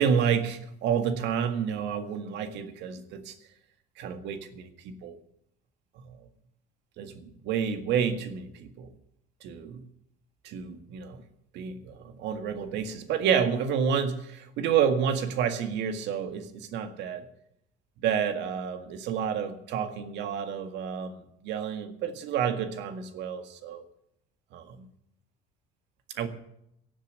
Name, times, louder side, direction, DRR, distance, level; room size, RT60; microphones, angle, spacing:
voice 1, 0.0-3.3 4.0-5.2 6.0-6.2 7.0-8.9 9.4-9.9 10.4-11.2 11.5-17.3 18.0-23.8 24.5-24.9 26.2-26.3, right 7 dB, 65° right, 8 dB, 1.8 m, -29 dB
17.0 x 7.4 x 9.2 m, 0.78 s
cardioid pair, 125°, 20 cm